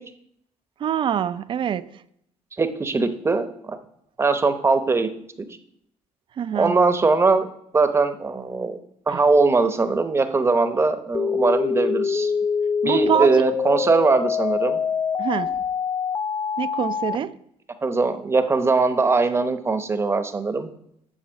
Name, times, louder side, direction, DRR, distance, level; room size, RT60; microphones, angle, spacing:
voice 1, 0.8-1.9 6.4-6.8 9.1-9.2 12.8-13.3 15.2-15.6 16.6-17.3, right 9 dB, 45° right, 0.4 m, -24 dB
voice 2, 2.6-3.8 4.2-5.1 6.5-7.5 7.7-8.8 9.1-12.3 12.8-14.8 17.8-20.7, right 3 dB, 20° right, 0.8 m, -21 dB
sound 1, 11.1-17.2, left 6 dB, 25° left, 0.3 m, -24 dB
9.0 x 4.1 x 7.0 m
cardioid pair, 115°, 12 cm